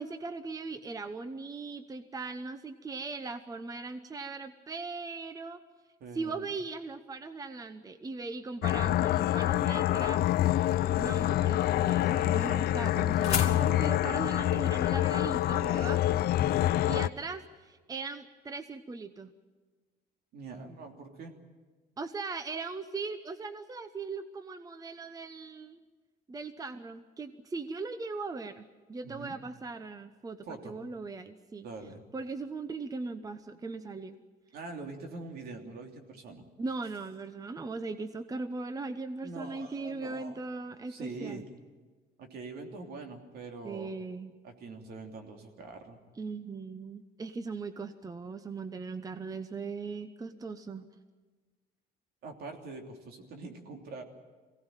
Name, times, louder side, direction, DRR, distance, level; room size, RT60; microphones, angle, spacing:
voice 1, 0.0-5.6 6.1-10.3 10.9-16.0 16.8-19.3 22.0-25.8 26.3-31.7 32.1-34.2 36.6-41.4 43.6-44.3 46.2-50.9, right 4 dB, 20° right, 11 dB, 0.9 m, -39 dB
voice 2, 6.0-6.5 10.7-11.0 16.4-16.8 20.3-21.3 29.0-29.4 30.4-30.8 31.6-32.0 34.5-36.5 39.2-40.4 40.9-41.4 42.2-43.9 44.4-46.0 52.2-54.0, right 3 dB, 65° right, 3 dB, 3.2 m, -44 dB
sound 1, 8.6-17.1, left 13 dB, 65° left, 0.6 m, -26 dB
sound 2, 11.5-16.8, left 6 dB, 40° left, 3.0 m, -39 dB
22.5 x 17.5 x 9.1 m, 1.4 s
cardioid pair, 110°, 17 cm